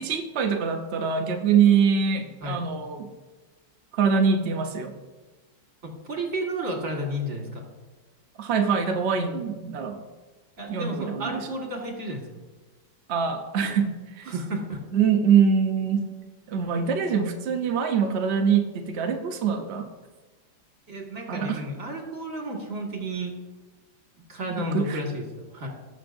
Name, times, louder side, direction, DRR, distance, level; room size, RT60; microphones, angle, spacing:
voice 1, 0.0-3.1 3.9-4.9 8.4-10.0 10.7-11.4 13.1-14.3 14.9-16.0 16.5-19.9 21.3-21.6 24.5-25.0, right 6 dB, 65° right, 4 dB, 0.6 m, -24 dB
voice 2, 5.8-7.7 10.6-12.2 14.3-14.8 20.9-23.3 24.3-25.3 25.5-25.7, right 1 dB, 45° right, 0 dB, 2.1 m, -32 dB
17.0 x 6.6 x 2.6 m, 1.3 s
omnidirectional pair, 2.0 m